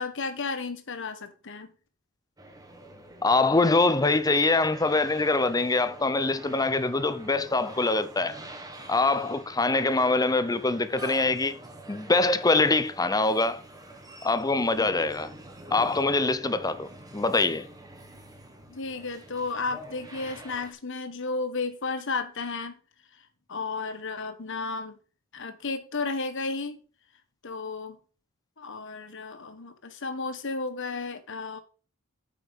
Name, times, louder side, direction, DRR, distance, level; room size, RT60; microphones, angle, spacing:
voice 1, 0.0-1.7 14.8-14.9 18.7-22.8 23.5-25.0 25.3-26.8 27.4-28.0 28.6-31.6, left 3 dB, 60° left, 1.4 m, -33 dB
sound 1, 2.4-20.7, right 1 dB, 20° right, 1.7 m, -45 dB
voice 2, 3.2-8.4 8.9-11.6 11.9-13.6 14.2-15.3 15.7-16.9 17.1-17.7, left 3 dB, 20° left, 0.7 m, -24 dB
9.0 x 6.1 x 5.3 m
head